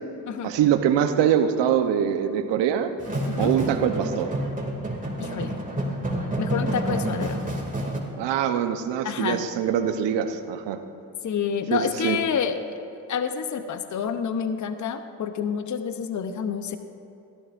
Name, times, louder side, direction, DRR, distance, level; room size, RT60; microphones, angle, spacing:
voice 1, 0.4-2.9 3.4-4.3 8.2-10.8 11.7-12.2, right 9 dB, 75° right, 8 dB, 0.9 m, -23 dB
sound 1, 3.0-8.0, right 1 dB, 20° right, 2.5 m, -28 dB
voice 2, 5.2-5.6 6.4-7.4 9.0-9.4 11.2-12.6 13.1-16.8, left 7 dB, 45° left, 9 dB, 0.8 m, -28 dB
19.0 x 12.5 x 2.6 m, 2.9 s
supercardioid pair, 55°, 43 cm